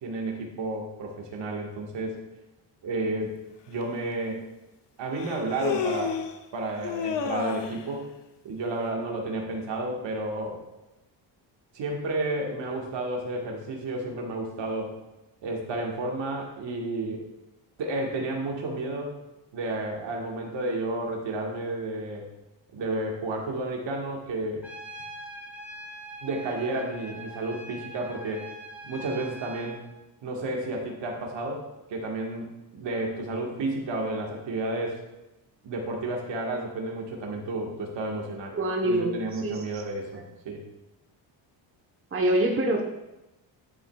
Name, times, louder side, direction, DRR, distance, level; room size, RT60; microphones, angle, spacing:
voice 1, 0.0-2.2 2.8-3.4 3.7-4.4 5.0-6.2 6.5-8.1 8.4-10.6 11.7-15.0 15.4-17.3 17.8-19.2 19.5-22.3 22.7-24.7 26.2-28.5 28.8-29.8 30.2-35.0 35.6-38.6 38.8-40.6, right 2 dB, 65° right, 1 dB, 1.7 m, -31 dB
Human voice, 3.8-3.9 5.2-6.4 6.8-7.8, left 7 dB, 65° left, 0.9 m, -30 dB
Trumpet, 24.6-29.8, right 1 dB, 5° right, 1.6 m, -42 dB
voice 2, 38.5-39.8 40.1-40.2 42.1-42.8, right 1 dB, 30° right, 1 dB, 1.1 m, -26 dB
11.0 x 7.2 x 2.4 m, 0.98 s
cardioid pair, 85°, 47 cm